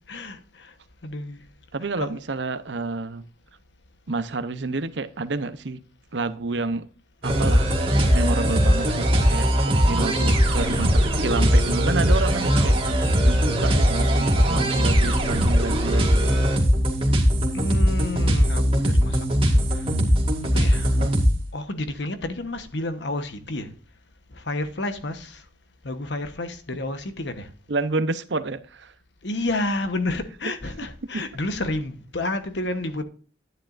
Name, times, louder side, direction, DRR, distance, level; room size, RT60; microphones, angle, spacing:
voice 1, 0.1-0.7 1.0-1.4 2.0-2.2 17.5-19.9 20.5-21.0 21.5-23.7 24.3-25.4 25.8-27.5 29.2-33.0, left 2 dB, 75° left, 1.2 m, -30 dB
voice 2, 1.7-3.2 4.1-5.8 6.1-6.9 7.2-7.7 8.1-16.3 21.0-21.2 27.7-28.9 31.1-31.2, right 3 dB, 75° right, 0.8 m, -29 dB
sound 1, 7.2-21.5, equal, 30° right, 2.2 m, -20 dB
11.0 x 10.0 x 2.6 m
head